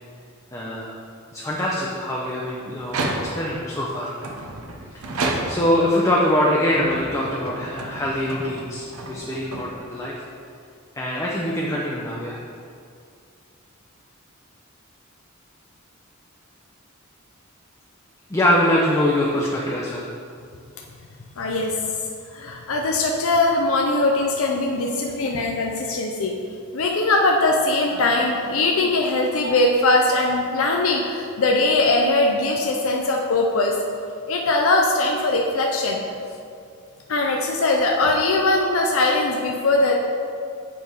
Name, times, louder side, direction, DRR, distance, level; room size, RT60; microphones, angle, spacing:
voice 1, 0.5-0.9 1.3-4.1 5.5-10.1 11.0-12.4 18.3-20.1, left 1 dB, 15° left, -4 dB, 0.6 m, -23 dB
sound 1, 2.8-3.6 4.2-5.9 6.6-10.1, right 2 dB, 85° right, 0.7 m, -31 dB
voice 2, 21.4-21.8 22.3-26.3 26.7-33.7 34.3-36.0 37.1-40.0, left 2 dB, 70° left, 0 dB, 0.5 m, -21 dB
7.8 x 3.5 x 4.7 m, 2.3 s
head